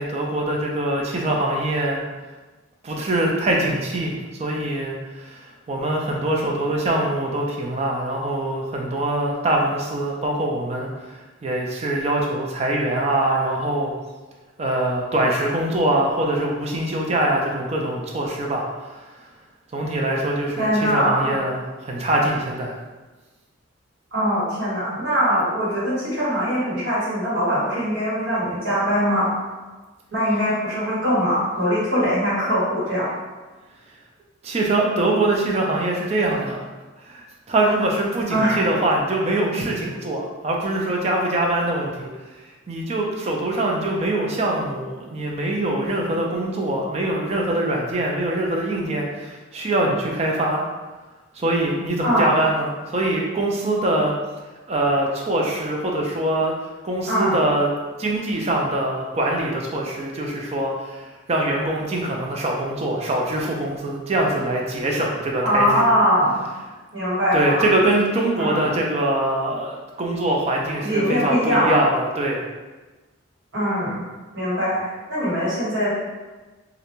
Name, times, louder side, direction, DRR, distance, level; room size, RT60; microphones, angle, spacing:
voice 1, 0.0-2.0 2.8-13.9 14.6-19.0 19.7-22.8 34.4-36.6 37.0-42.1 42.7-50.6 51.3-54.1 54.7-56.5 56.8-57.7 58.0-65.9 67.3-72.4, right 1 dB, 30° right, -1 dB, 0.3 m, -23 dB
voice 2, 20.6-21.3 24.1-29.3 30.1-33.1 38.3-38.6 52.0-52.4 57.1-57.4 65.4-66.4 66.9-67.6 68.4-68.7 70.8-71.7 73.5-74.0 74.3-75.9, equal, 60° right, -10 dB, 1.4 m, -22 dB
2.4 x 2.1 x 2.9 m, 1.2 s
head